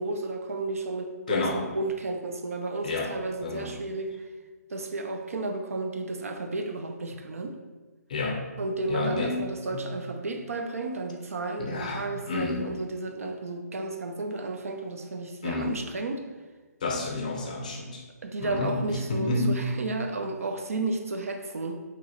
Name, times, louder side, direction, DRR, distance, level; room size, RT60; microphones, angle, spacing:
voice 1, 0.0-4.3 4.7-7.6 8.6-16.2 18.2-21.8, right 2 dB, 55° right, 5 dB, 0.8 m, -32 dB
voice 2, 1.3-1.6 2.8-3.1 3.4-3.7 8.1-8.4 8.9-9.4 9.7-9.9 11.6-12.7 15.4-15.7 16.8-18.0 18.4-19.6, left 2 dB, 25° left, 2 dB, 0.6 m, -30 dB
6.8 x 3.1 x 5.1 m, 1.3 s
hypercardioid pair, 180°, 9 cm